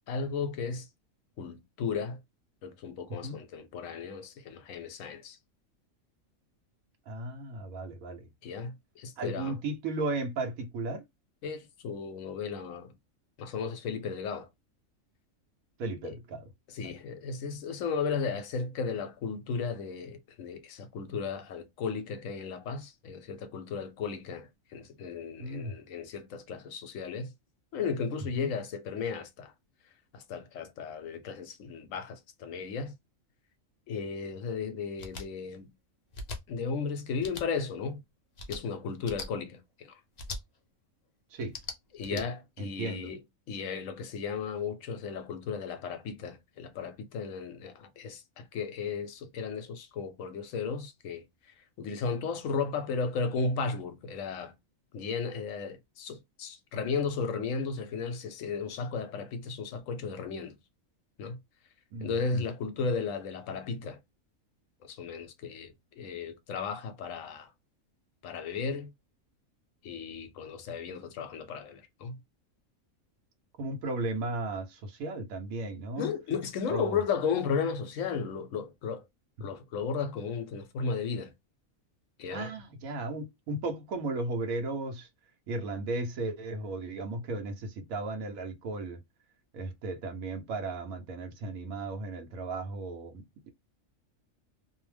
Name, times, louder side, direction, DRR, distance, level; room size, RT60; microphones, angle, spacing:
voice 1, 0.1-0.9 1.4-2.2 2.6-5.4 8.4-9.6 11.4-12.9 13.4-14.5 16.0-16.1 16.7-27.3 27.7-29.5 30.1-32.9 33.9-35.7 36.5-38.0 38.5-40.0 41.9-43.2 43.5-51.2 51.8-54.5 54.9-60.6 61.2-61.4 62.0-64.0 64.8-67.5 68.2-68.9 69.8-72.2 76.0-79.0 79.4-81.3 82.2-82.5, left 5 dB, 75° left, 0.9 m, -35 dB
voice 2, 7.1-8.3 9.2-11.0 15.8-16.5 16.8-16.9 25.4-25.8 28.3-28.5 41.3-41.6 42.0-42.3 42.6-43.1 61.9-62.4 73.6-76.1 76.7-77.0 82.3-85.1 85.5-89.0 89.5-93.1, right 2 dB, 85° right, 1.1 m, -35 dB
sound 1, 35.0-35.2 36.1-36.4 37.2-37.4 38.3-38.6 39.0-39.3 40.2-40.4 41.4-42.2, left 3 dB, 55° left, 0.4 m, -39 dB
2.6 x 2.0 x 3.1 m
omnidirectional pair, 1.4 m